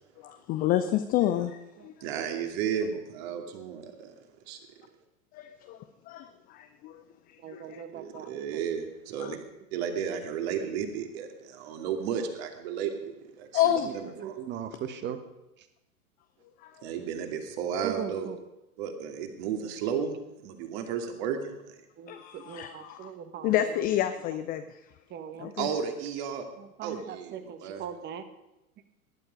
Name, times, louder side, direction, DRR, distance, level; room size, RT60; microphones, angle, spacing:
voice 1, 0.2-1.9 5.3-5.8 6.1-7.0 7.5-7.8 9.2-9.3 13.5-13.9 16.6-16.7 22.1-23.1 23.4-24.8 25.4-25.7, left 12 dB, 20° left, 9 dB, 0.5 m, -29 dB
voice 2, 2.0-4.6 7.6-9.4 9.7-14.4 16.8-18.3 18.8-20.2 20.4-21.8 25.6-26.5 26.8-27.8, right 7 dB, 45° right, 5 dB, 2.5 m, -33 dB
voice 3, 7.4-8.6 9.3-9.5 13.8-15.2 15.6-15.7 17.8-18.4 22.0-23.8 25.1-25.5 26.6-28.2, right 9 dB, 25° right, 10 dB, 1.3 m, -39 dB
19.0 x 11.0 x 5.2 m, 0.93 s
figure-of-eight pair, 100°, 43 cm